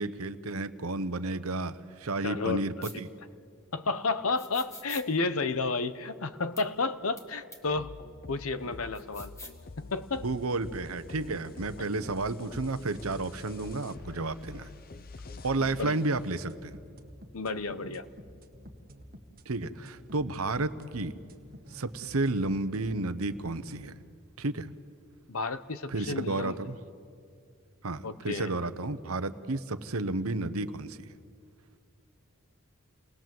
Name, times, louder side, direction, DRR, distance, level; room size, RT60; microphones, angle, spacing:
voice 1, 0.0-3.1 10.2-14.7 15.4-16.7 19.5-21.2 21.7-23.9 24.4-24.7 25.9-26.8 27.8-31.1, right 2 dB, 85° right, 12 dB, 1.0 m, -32 dB
voice 2, 2.2-2.7 2.9-3.0 3.7-8.0 8.3-9.3 9.9-10.3 15.6-16.0 17.3-18.1 25.3-26.6 28.0-28.7, left 3 dB, 75° left, 13 dB, 0.9 m, -32 dB
sound 1, 2.8-3.0 4.4-5.1 6.6-6.7 7.2-7.3 7.5-7.6 8.9-9.6, left 2 dB, 15° left, 1.8 m, -45 dB
sound 2, 7.7-16.3, left 3 dB, 45° left, 0.7 m, -46 dB
sound 3, 16.3-23.8, equal, 45° right, 1.7 m, -50 dB
29.0 x 19.5 x 7.7 m, 2.3 s
head